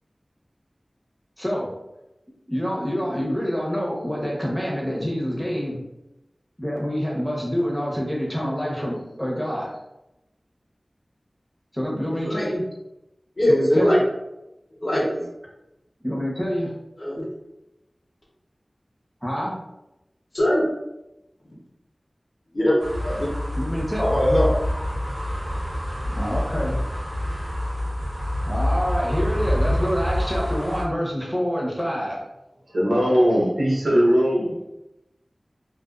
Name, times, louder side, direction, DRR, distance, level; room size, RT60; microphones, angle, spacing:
voice 1, 1.4-1.7 2.5-5.8 6.6-9.7 11.7-12.6 13.4-14.0 16.0-16.7 19.2-19.5 23.6-24.0 26.1-26.8 28.4-32.2, equal, ahead, -4 dB, 0.8 m, -26 dB
voice 2, 13.4-14.0 14.8-15.2 17.0-17.2 20.3-20.7 22.5-23.3 24.0-24.5, equal, 55° left, -4 dB, 0.8 m, -21 dB
sound 1, 22.8-30.8, left 1 dB, 55° right, 0.8 m, -26 dB
voice 3, 32.7-34.6, equal, 85° right, -6 dB, 0.9 m, -19 dB
2.4 x 2.3 x 2.4 m, 0.93 s
wide cardioid pair, 40°, 0 cm